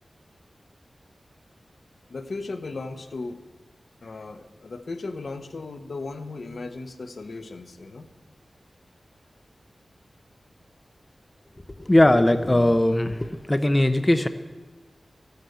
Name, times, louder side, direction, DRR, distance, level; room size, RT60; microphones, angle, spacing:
voice 1, 2.1-3.4 4.0-8.1, left 3 dB, 70° left, 9 dB, 1.1 m, -36 dB
voice 2, 11.8-14.3, left 1 dB, 20° left, 10 dB, 0.7 m, -19 dB
14.5 x 11.5 x 8.1 m, 1.3 s
wide cardioid pair, 105°, 0 cm